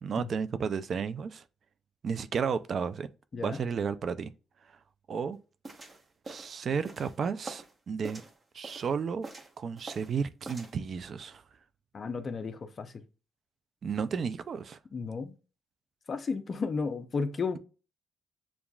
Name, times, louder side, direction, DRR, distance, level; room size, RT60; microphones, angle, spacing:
voice 1, 0.0-1.4 2.0-3.1 3.4-4.3 5.1-5.4 6.3-8.2 8.5-9.3 9.6-11.4 13.8-14.8, right 6 dB, 50° right, 0.4 m, -32 dB
sound 1, 5.6-7.7 8.0-8.9 9.2-10.2 10.4-10.8, right 3 dB, 30° right, 1.0 m, -45 dB
voice 2, 11.9-12.9 14.9-15.3 16.1-17.6, left 4 dB, 40° left, 0.6 m, -33 dB
7.0 x 2.4 x 2.3 m
cardioid pair, 90°, 0 cm